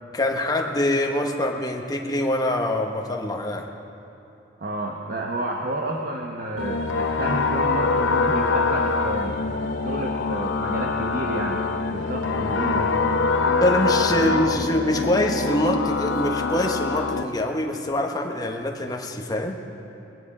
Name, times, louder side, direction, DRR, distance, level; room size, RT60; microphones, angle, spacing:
voice 1, 0.1-3.7 13.6-19.6, left 1 dB, 20° left, 2 dB, 1.0 m, -24 dB
voice 2, 4.6-9.4 9.8-11.6 11.9-12.9 14.1-14.7, right 1 dB, 50° right, 0 dB, 1.0 m, -30 dB
sound 1, 6.6-17.2, left 4 dB, 90° left, 0.7 m, -24 dB
21.0 x 9.8 x 4.9 m, 2.9 s
head